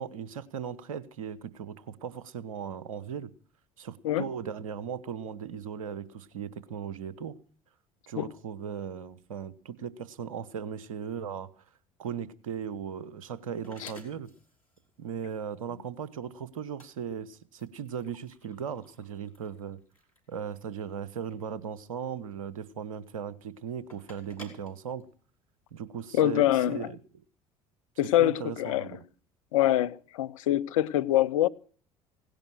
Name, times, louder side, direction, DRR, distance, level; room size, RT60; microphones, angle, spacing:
voice 1, 0.0-3.3 3.8-7.4 8.1-11.5 12.0-14.3 15.0-19.8 20.3-25.1 25.7-27.2 28.2-29.0, right 7 dB, 75° right, 1.0 m, -38 dB
sound 1, 12.4-25.7, left 1 dB, 90° left, 2.8 m, -56 dB
voice 2, 26.1-26.9 28.0-28.9 29.5-31.5, left 13 dB, 70° left, 0.6 m, -25 dB
17.0 x 10.5 x 6.2 m
figure-of-eight pair, 60°, 18 cm